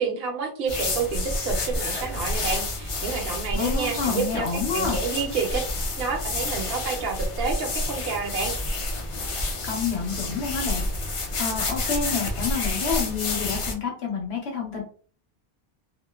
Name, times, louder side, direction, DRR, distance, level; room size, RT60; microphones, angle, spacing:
voice 1, 0.0-5.6 6.0-8.5, right 5 dB, 75° right, 0 dB, 0.8 m, -29 dB
sound 1, 0.7-13.7, left 2 dB, 50° left, 0.4 m, -29 dB
voice 2, 3.5-5.0 9.3-10.8 11.4-14.8, left 5 dB, 85° left, 0 dB, 1.2 m, -29 dB
2.9 x 2.0 x 2.2 m, 0.42 s
omnidirectional pair, 1.0 m